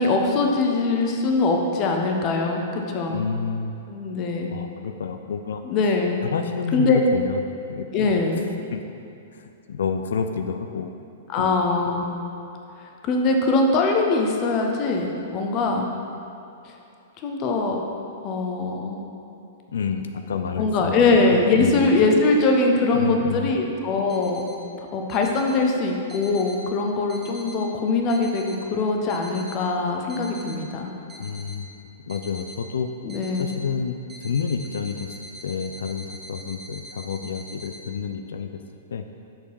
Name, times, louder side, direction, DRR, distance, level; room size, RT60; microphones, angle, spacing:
voice 1, 0.0-3.2 3.9-4.5 5.6-6.2 6.7-7.0 7.9-8.4 11.3-12.0 13.0-15.9 17.2-17.8 18.2-19.0 20.6-24.4 24.9-30.9 33.0-33.5, left 3 dB, 35° left, 2 dB, 1.0 m, -22 dB
voice 2, 3.1-3.7 4.5-5.6 6.2-8.1 8.7-8.8 9.3-10.9 11.4-11.6 19.7-21.9 22.9-23.6 31.2-31.7 32.1-32.9 33.4-35.1 35.4-38.5 38.9-39.0, left 6 dB, 65° left, 7 dB, 0.4 m, -29 dB
sound 1, 24.1-24.6 25.1-25.6 26.1-26.6 27.1-27.6 28.1-28.6 29.1-29.6 30.1-30.6 31.1-31.6 32.1-32.6 33.1-33.6 34.1-37.8, equal, 10° right, 1.3 m, -43 dB
7.7 x 6.6 x 4.8 m, 2.6 s
figure-of-eight pair, 105°, 0 cm